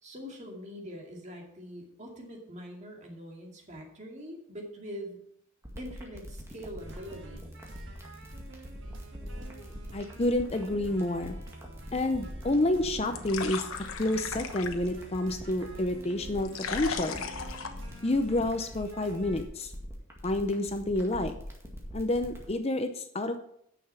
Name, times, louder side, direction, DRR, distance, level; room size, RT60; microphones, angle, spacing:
voice 1, 0.0-5.2 5.8-7.5, equal, 35° right, 0 dB, 2.4 m, -43 dB
sound 1, 5.6-22.5, equal, 10° right, 2.0 m, -43 dB
sound 2, 6.8-19.4, right 2 dB, 60° right, 1.6 m, -49 dB
voice 2, 9.2-11.4 11.9-13.7 14.0-17.2 18.0-19.7 20.2-21.3 21.9-23.4, left 1 dB, 30° left, 8 dB, 0.6 m, -29 dB
sound 3, 12.6-18.6, left 6 dB, 80° left, 1.1 m, -39 dB
9.9 x 6.8 x 5.7 m, 0.72 s
head